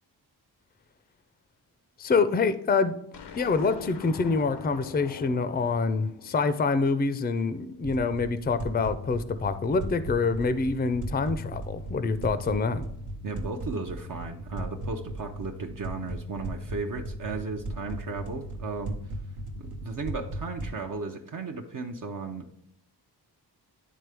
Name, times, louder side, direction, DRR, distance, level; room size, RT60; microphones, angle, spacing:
voice 1, 2.0-3.0 3.4-12.8, left 4 dB, 25° left, 12 dB, 0.4 m, -26 dB
sound 1, 3.1-7.5, left 5 dB, 90° left, 0.8 m, -44 dB
sound 2, 7.8-20.8, right 1 dB, 80° right, 1.1 m, -37 dB
voice 2, 13.2-18.9 19.6-22.5, right 4 dB, 50° right, 2 dB, 0.7 m, -35 dB
10.0 x 3.7 x 3.4 m, 0.75 s
wide cardioid pair, 95°, 40 cm